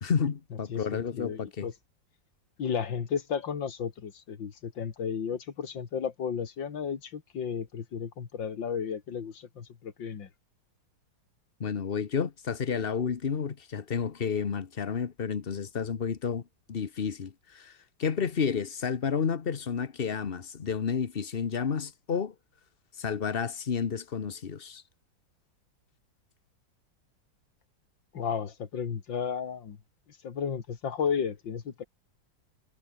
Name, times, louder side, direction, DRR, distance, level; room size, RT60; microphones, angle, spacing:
voice 1, 0.0-1.7 11.6-16.4 16.7-22.3 23.0-24.8, left 6 dB, 35° left, 1.1 m, -31 dB
voice 2, 0.7-1.7 2.6-10.3 28.1-29.8 30.2-31.8, left 7 dB, 85° left, 2.7 m, -33 dB
omnidirectional pair, 2.0 m